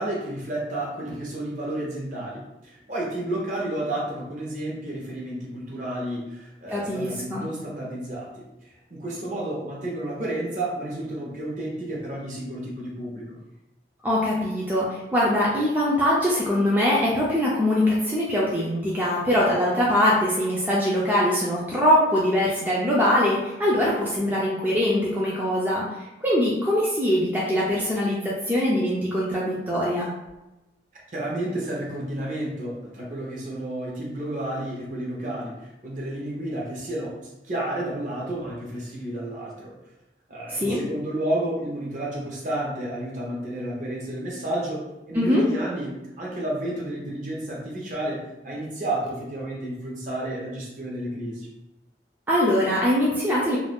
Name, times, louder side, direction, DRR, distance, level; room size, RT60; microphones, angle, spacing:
voice 1, 0.0-13.4 30.9-39.8 40.3-51.5, right 1 dB, 45° right, -3 dB, 0.7 m, -31 dB
voice 2, 6.7-7.4 14.0-30.1 40.5-40.8 45.1-45.4 52.3-53.6, left 1 dB, 10° right, -6 dB, 0.4 m, -22 dB
2.5 x 2.2 x 3.4 m, 0.99 s
head